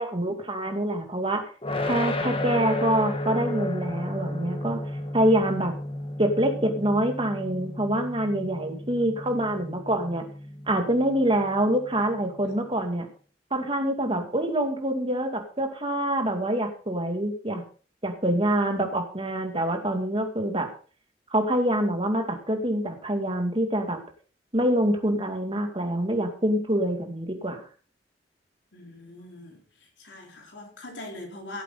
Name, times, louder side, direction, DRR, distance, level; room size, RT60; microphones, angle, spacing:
voice 1, 0.0-1.5 1.9-4.8 5.1-5.7 6.2-10.2 10.7-13.1 13.5-17.6 18.0-20.7 21.3-24.0 24.5-27.6, right 1 dB, 30° right, 4 dB, 2.3 m, -25 dB
sound 1, 1.6-12.6, left 1 dB, 30° left, 1.3 m, -33 dB
voice 2, 28.7-31.6, left 2 dB, 85° left, 0 dB, 3.9 m, -42 dB
16.0 x 8.5 x 3.9 m, 0.40 s
head